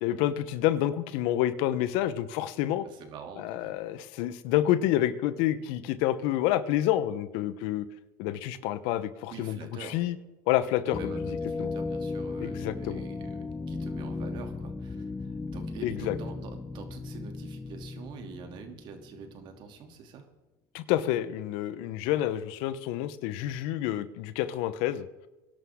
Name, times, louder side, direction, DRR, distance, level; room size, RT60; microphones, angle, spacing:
voice 1, 0.0-2.9 3.4-7.9 8.2-9.6 9.9-10.2 10.5-11.0 11.6-11.7 12.4-13.0 15.8-16.2 20.7-25.0, left 13 dB, 65° left, 14 dB, 1.0 m, -28 dB
voice 2, 2.8-3.7 9.3-10.0 10.9-20.3, right 6 dB, 50° right, 5 dB, 2.9 m, -46 dB
sound 1, 10.9-19.6, left 3 dB, 20° left, 1.1 m, -36 dB
22.5 x 11.5 x 3.8 m, 1.1 s
supercardioid pair, 105°, 10 cm